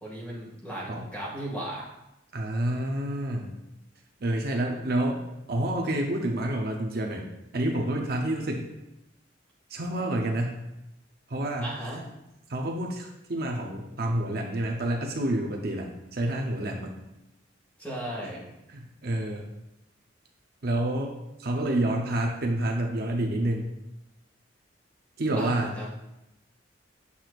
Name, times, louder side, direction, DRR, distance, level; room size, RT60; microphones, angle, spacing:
voice 1, 0.0-1.9 11.6-12.0 17.8-18.5 25.4-25.9, right 1 dB, 10° left, -5 dB, 1.8 m, -36 dB
voice 2, 2.3-3.5 4.2-5.2 5.5-7.2 7.5-8.7 9.7-10.6 11.3-11.7 12.5-16.9 18.7-19.4 20.6-23.7 25.2-25.8, right 1 dB, 50° right, 1 dB, 0.6 m, -28 dB
8.3 x 6.0 x 2.4 m, 0.90 s
head